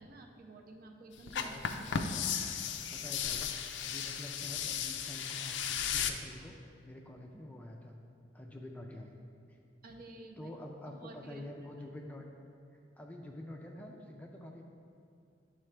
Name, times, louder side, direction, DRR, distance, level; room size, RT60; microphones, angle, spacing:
voice 1, 0.0-2.1 2.4-2.6 9.8-10.5 10.9-11.4, right 2 dB, 55° right, 3 dB, 0.6 m, -51 dB
sound 1, 1.3-6.1, left 7 dB, 80° left, 0.4 m, -35 dB
voice 2, 1.3-1.6 2.0-2.3 2.9-3.5 3.8-5.6 5.9-8.0 8.3-9.1 9.5-9.6 10.4-12.3 13.0-14.6, left 1 dB, 10° left, 1 dB, 0.4 m, -47 dB
10.0 x 3.7 x 3.3 m, 2.4 s
head